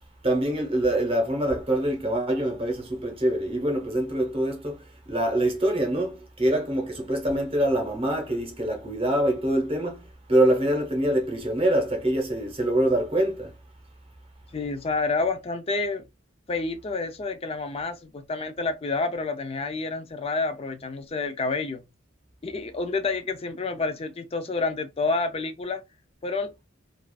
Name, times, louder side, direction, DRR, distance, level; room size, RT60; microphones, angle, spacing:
voice 1, 0.2-13.5, right 1 dB, 30° right, 0.8 m, -25 dB
voice 2, 14.5-16.0 16.5-21.8 22.4-25.8 26.2-26.5, left 3 dB, 30° left, 0.4 m, -29 dB
2.4 x 2.3 x 2.3 m
head